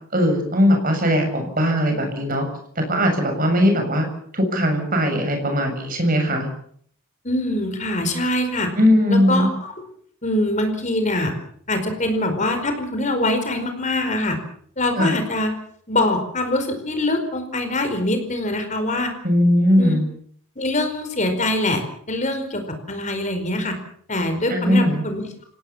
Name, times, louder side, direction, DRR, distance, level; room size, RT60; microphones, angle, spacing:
voice 1, 0.1-2.5 2.8-4.1 4.3-6.5 8.8-9.5 15.0-15.1 19.2-20.1 24.5-25.0, equal, 40° right, 4 dB, 7.2 m, -19 dB
voice 2, 7.2-8.7 9.1-9.5 10.2-11.3 11.7-14.4 14.8-15.5 15.9-19.1 19.8-19.9 20.6-21.8 22.1-22.6 22.9-23.8 24.1-25.2, left 1 dB, 35° left, 6 dB, 4.9 m, -23 dB
29.0 x 18.0 x 7.3 m, 0.62 s
head